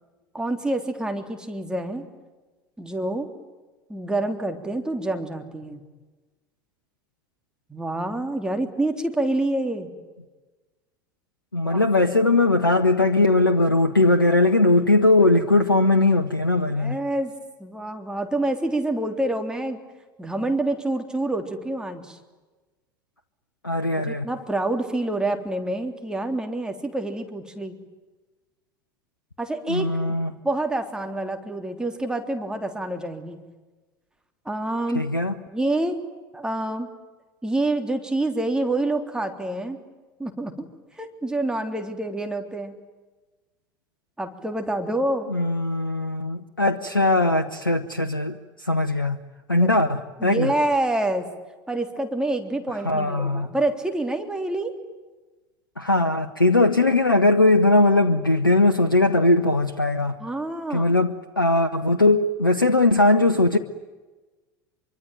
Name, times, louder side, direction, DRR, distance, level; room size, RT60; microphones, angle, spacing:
voice 1, 0.3-2.1 2.8-3.3 3.9-5.8 7.7-9.9 11.6-11.8 16.7-17.3 17.6-19.8 20.2-22.2 24.0-27.8 29.4-30.2 30.4-33.4 34.5-35.0 35.5-36.0 36.3-36.9 37.4-39.8 40.2-40.7 41.0-42.7 44.2-45.3 49.5-49.7 50.2-51.3 51.7-54.7 60.2-60.9, right 2 dB, 5° right, 5 dB, 3.5 m, -27 dB
voice 2, 11.5-17.0 23.6-24.3 29.7-30.3 34.9-35.3 45.3-49.2 49.5-50.5 52.8-53.5 55.8-60.2 60.7-63.6, left 2 dB, 90° left, 10 dB, 0.9 m, -20 dB
25.5 x 24.0 x 9.2 m, 1.2 s
figure-of-eight pair, 75°, 11 cm